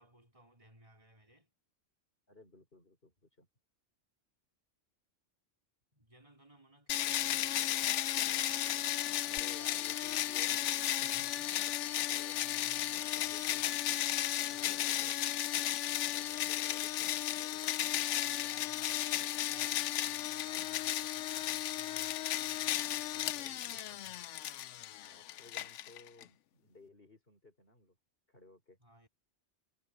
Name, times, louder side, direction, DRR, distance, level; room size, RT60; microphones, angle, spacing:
voice 1, 0.0-1.5 5.9-7.6 11.1-11.6 12.0-13.9 14.5-14.7 18.2-24.2 28.8-29.1, right 1 dB, 30° right, 4.3 m, -62 dB
voice 2, 2.3-3.5 9.2-11.3 11.8-12.3 12.8-13.6 14.1-15.2 16.1-17.7 23.3-23.8 24.1-24.3 25.0-28.0 28.3-28.8, left 2 dB, 50° left, 5.1 m, -58 dB
sound 1, 6.9-26.2, left 13 dB, 80° left, 0.9 m, -34 dB
sound 2, 9.4-12.3, right 1 dB, 60° right, 7.2 m, -63 dB
omnidirectional pair, 1.2 m